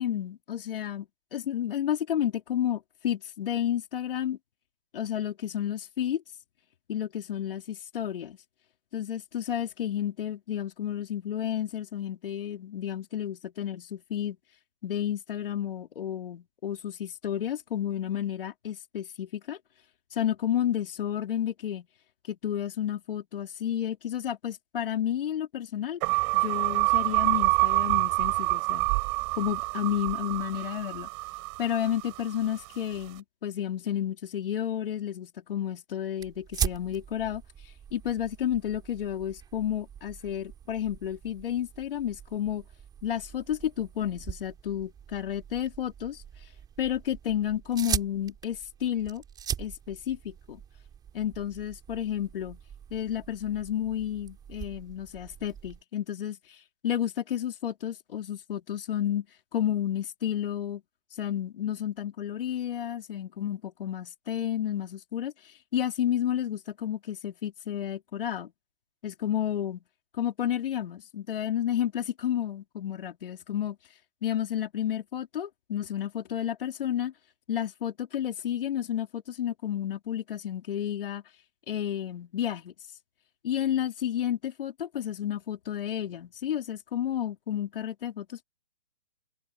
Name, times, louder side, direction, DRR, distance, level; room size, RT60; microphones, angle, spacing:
voice 1, 0.0-4.4 4.9-6.2 6.9-8.4 8.9-14.4 14.8-19.6 20.1-21.9 22.3-26.0 26.3-28.9 29.4-31.1 31.6-37.4 37.9-42.6 43.0-46.2 46.8-49.2 49.6-50.6 51.1-52.6 52.9-56.4 56.8-59.3 59.5-60.8 61.2-68.5 69.0-69.8 70.2-73.8 74.2-77.1 77.5-81.2 81.7-82.7 83.4-88.4, left 10 dB, 55° left, 3.8 m, -31 dB
sound 1, 26.0-32.4, right 31 dB, 30° right, 6.8 m, -27 dB
sound 2, 36.2-55.8, right 8 dB, 10° right, 5.1 m, -40 dB
hypercardioid pair, 155°, 33 cm